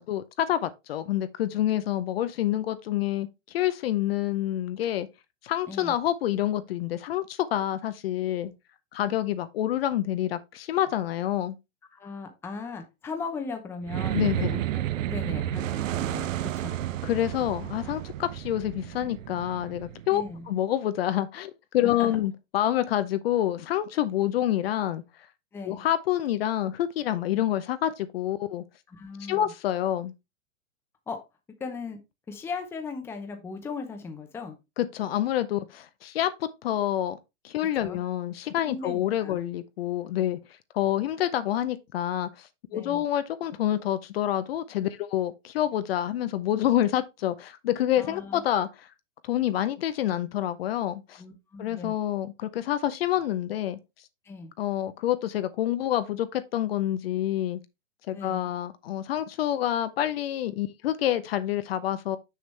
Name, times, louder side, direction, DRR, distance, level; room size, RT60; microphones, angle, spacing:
voice 1, 0.0-5.1 5.4-8.5 8.9-11.6 14.1-14.6 17.0-25.0 25.6-28.6 29.3-30.1 34.8-37.2 37.4-40.4 40.7-48.9 49.2-51.2 51.6-53.8 54.6-57.6 58.1-62.2, left 12 dB, 50° left, 0.6 m, -27 dB
voice 2, 11.9-15.6 15.9-16.8 20.1-20.5 21.8-22.2 25.5-25.9 28.9-29.5 31.1-31.2 31.6-32.0 32.3-34.6 37.6-38.0 38.7-39.4 42.7-43.0 48.0-48.4 51.2-52.0 54.2-54.5 58.1-58.5, left 4 dB, 5° left, 0.7 m, -38 dB
sound 1, 13.8-20.5, right 12 dB, 75° right, 0.7 m, -31 dB
6.4 x 5.9 x 3.2 m
hypercardioid pair, 150°, 39 cm